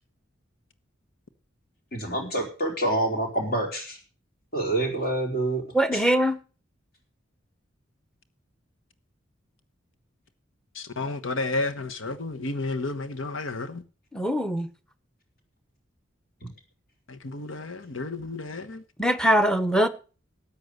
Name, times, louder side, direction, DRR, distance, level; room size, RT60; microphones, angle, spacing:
voice 1, 1.9-4.0 4.5-5.6 5.9-6.0 16.4-16.5, right 1 dB, 50° left, 4.4 m, -27 dB
voice 2, 5.7-6.4 14.1-14.7 19.0-19.9, right 1 dB, 5° left, 0.9 m, -22 dB
voice 3, 10.7-13.8 17.1-18.8, left 2 dB, 80° left, 1.2 m, -31 dB
13.5 x 8.8 x 6.7 m
head